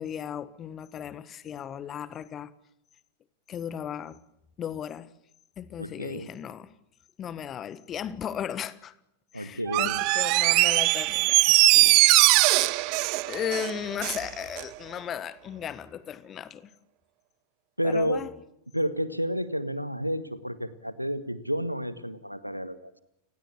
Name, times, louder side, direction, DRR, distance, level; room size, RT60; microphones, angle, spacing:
voice 1, 0.0-2.5 3.5-4.2 4.6-5.1 5.6-6.7 7.2-8.9 9.3-12.0 13.2-16.7 17.8-18.3, left 9 dB, 25° left, 1.5 m, -36 dB
voice 2, 5.8-6.3 9.3-10.0 17.8-18.2 18.7-23.0, equal, 90° right, 1.5 m, -30 dB
Door, 9.7-14.3 14.6-14.7, right 23 dB, 45° right, 0.9 m, -21 dB
29.5 x 20.0 x 7.2 m
figure-of-eight pair, 90°, 0 cm